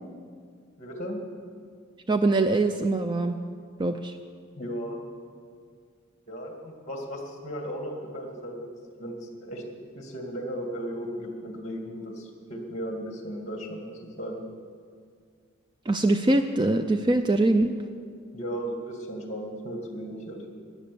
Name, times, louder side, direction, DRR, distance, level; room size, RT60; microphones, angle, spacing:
voice 1, 0.8-1.2 4.6-5.0 6.3-8.7 9.0-9.6 10.0-14.4 18.3-20.5, equal, 35° left, 2 dB, 2.2 m, -36 dB
voice 2, 2.1-3.4 3.8-4.2 15.9-17.8, right 2 dB, 20° right, 8 dB, 0.4 m, -23 dB
14.5 x 10.0 x 6.9 m, 2.1 s
head